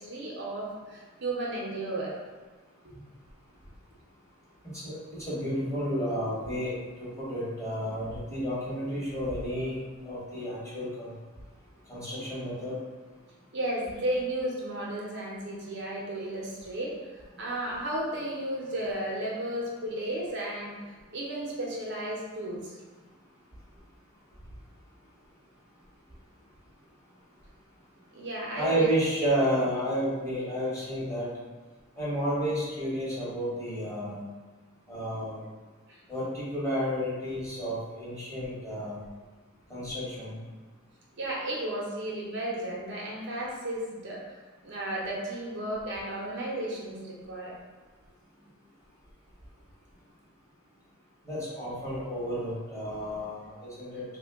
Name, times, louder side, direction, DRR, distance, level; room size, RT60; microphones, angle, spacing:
voice 1, 0.0-2.1 2.8-3.0 13.5-16.9 17.4-20.7 21.1-22.7 28.1-28.9 41.2-44.2 44.6-47.5, right 1 dB, 55° right, -4 dB, 0.7 m, -33 dB
voice 2, 5.2-11.1 11.9-12.8 28.5-31.3 32.0-34.2 34.9-35.4 36.1-39.0 39.7-40.4 51.2-54.0, equal, 15° left, -9 dB, 1.1 m, -31 dB
3.4 x 2.2 x 3.5 m, 1.3 s
head